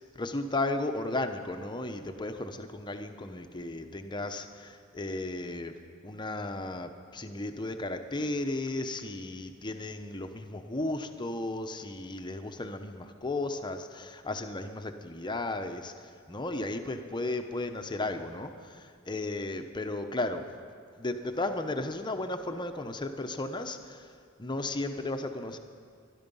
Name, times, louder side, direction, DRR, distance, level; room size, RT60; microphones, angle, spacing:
voice 1, 0.2-5.7 6.0-20.5 21.0-24.1 24.4-25.6, left 2 dB, 20° left, 7 dB, 0.8 m, -34 dB
21.0 x 12.0 x 5.5 m, 2.1 s
head